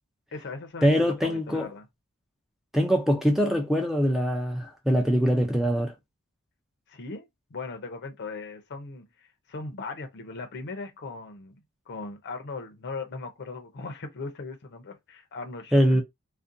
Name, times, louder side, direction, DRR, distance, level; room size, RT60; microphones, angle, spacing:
voice 1, 0.3-1.9 6.9-11.6 11.9-16.0, left 3 dB, 55° left, 0.6 m, -38 dB
voice 2, 0.8-1.7 2.7-5.9 15.7-16.0, equal, ahead, 0.4 m, -23 dB
2.5 x 2.2 x 2.6 m
head